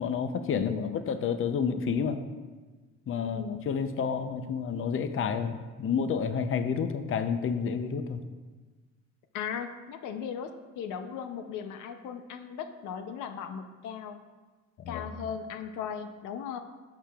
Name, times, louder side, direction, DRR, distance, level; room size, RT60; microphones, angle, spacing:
voice 1, 0.0-2.2 3.1-8.2 14.8-15.1, left 6 dB, 45° left, 9 dB, 0.6 m, -30 dB
voice 2, 0.5-1.0 3.2-3.6 9.3-14.2 14.9-16.6, left 8 dB, 85° left, 8 dB, 0.6 m, -37 dB
11.5 x 6.6 x 2.3 m, 1.3 s
cardioid pair, 90°, 30 cm